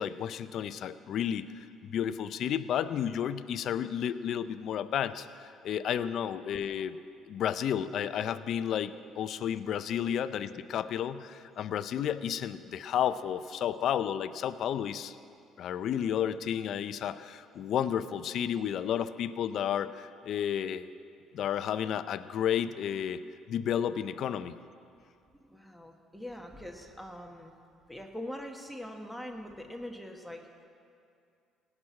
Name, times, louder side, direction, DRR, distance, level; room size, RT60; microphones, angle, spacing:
voice 1, 0.0-1.4 1.8-7.0 7.3-15.2 15.6-20.9 21.3-23.2 23.5-24.5, left 9 dB, 65° left, 13 dB, 0.5 m, -32 dB
voice 2, 25.4-27.6 27.9-30.4, left 1 dB, ahead, 2 dB, 1.4 m, -43 dB
17.5 x 6.1 x 9.5 m, 2.4 s
supercardioid pair, 75°, 0 cm